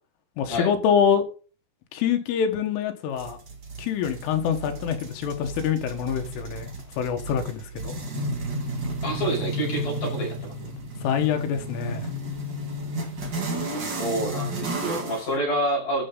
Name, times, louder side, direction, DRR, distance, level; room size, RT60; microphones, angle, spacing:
voice 1, 0.4-1.2 1.9-3.4 3.8-6.7 7.0-8.0 11.0-12.1, left 8 dB, 85° left, 4.0 m, -25 dB
sound 1, 3.2-15.3, right 1 dB, 35° right, 1.8 m, -32 dB
voice 2, 9.0-10.7 14.0-16.1, right 1 dB, 50° left, 7.9 m, -28 dB
13.5 x 6.8 x 3.9 m
omnidirectional pair, 5.5 m